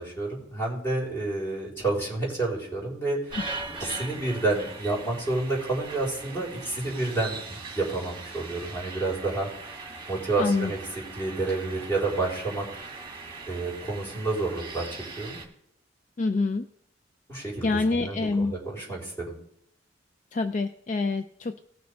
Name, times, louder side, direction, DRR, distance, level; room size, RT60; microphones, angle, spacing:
voice 1, 0.0-3.4 3.8-9.5 10.1-10.8 11.1-12.7 13.5-14.9 15.2-15.4 17.3-19.3, right 2 dB, 15° left, -4 dB, 4.2 m, -29 dB
sound 1, 3.3-15.4, right 3 dB, 25° right, 2.1 m, -40 dB
voice 2, 10.4-10.7 16.2-16.7 17.6-18.5 20.3-21.6, left 3 dB, 40° left, 9 dB, 0.4 m, -26 dB
18.5 x 6.4 x 3.5 m, 0.72 s
head